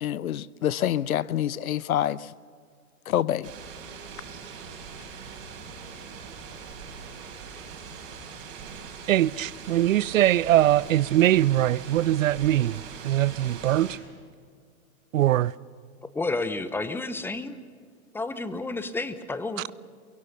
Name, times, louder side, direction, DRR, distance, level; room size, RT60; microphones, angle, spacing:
voice 1, 0.0-2.2 3.1-3.5, left 11 dB, 70° left, 0.8 m, -26 dB
sound 1, 3.4-14.0, right 6 dB, 35° right, 4.9 m, -42 dB
voice 2, 9.1-14.0 15.1-15.5, right 13 dB, 65° right, 0.6 m, -22 dB
voice 3, 16.1-17.6 18.1-19.7, left 3 dB, 5° left, 0.9 m, -31 dB
23.0 x 23.0 x 6.8 m
hypercardioid pair, 115°, 43 cm